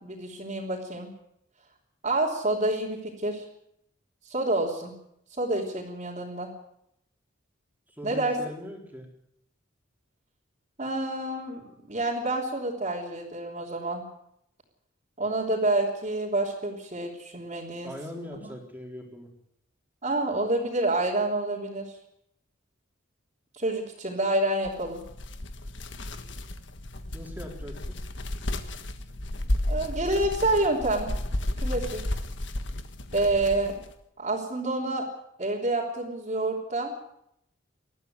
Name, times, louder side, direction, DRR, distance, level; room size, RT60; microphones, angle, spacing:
voice 1, 0.0-1.1 2.0-3.4 4.3-4.9 5.4-6.5 8.0-8.4 10.8-14.0 15.2-17.9 18.4-18.5 20.0-21.9 23.6-25.0 29.7-31.1 31.6-32.0 33.1-33.8 34.2-35.1 35.4-36.9, right 2 dB, 35° right, -5 dB, 3.5 m, -28 dB
voice 2, 7.9-9.1 17.8-19.3 27.1-27.9, left 1 dB, 10° right, 0 dB, 4.0 m, -40 dB
sound 1, 24.6-33.9, left 1 dB, 60° left, 1.6 m, -33 dB
21.0 x 14.0 x 9.5 m, 0.78 s
head